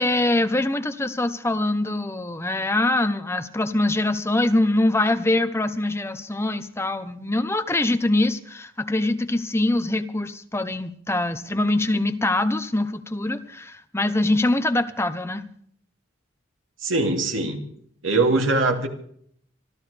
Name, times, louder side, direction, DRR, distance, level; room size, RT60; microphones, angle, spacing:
voice 1, 0.0-15.5, left 2 dB, 15° left, 0.9 m, -23 dB
voice 2, 16.8-17.6 18.0-18.9, right 2 dB, 85° right, 2.8 m, -22 dB
25.5 x 13.5 x 3.5 m
head